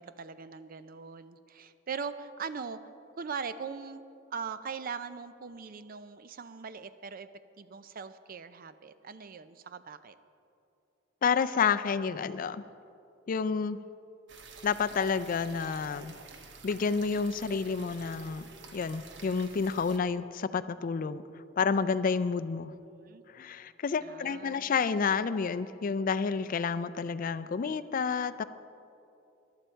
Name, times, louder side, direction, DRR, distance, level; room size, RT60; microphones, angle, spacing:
voice 1, 0.0-2.8 3.2-4.0 4.3-7.3 7.6-10.2 22.9-23.2 24.0-24.8, right 5 dB, 50° right, 12 dB, 0.5 m, -41 dB
voice 2, 11.2-12.6 13.3-13.8 14.6-16.1 16.6-18.4 18.7-21.2 21.6-22.7 23.3-28.4, left 5 dB, 45° left, 13 dB, 0.4 m, -29 dB
sound 1, 14.3-20.0, right 4 dB, 65° right, 1.0 m, -50 dB
14.5 x 11.5 x 4.5 m, 2.7 s
head